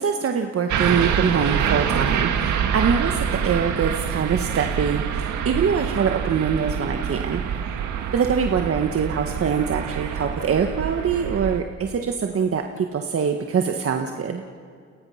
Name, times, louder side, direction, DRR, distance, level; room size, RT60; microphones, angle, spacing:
voice 1, 0.0-7.4 8.1-14.4, right 6 dB, 50° right, 4 dB, 1.5 m, -24 dB
sound 1, 0.7-11.6, right 8 dB, 75° right, 2.0 m, -26 dB
30.0 x 28.5 x 5.8 m, 2.1 s
cardioid pair, 90°, 30 cm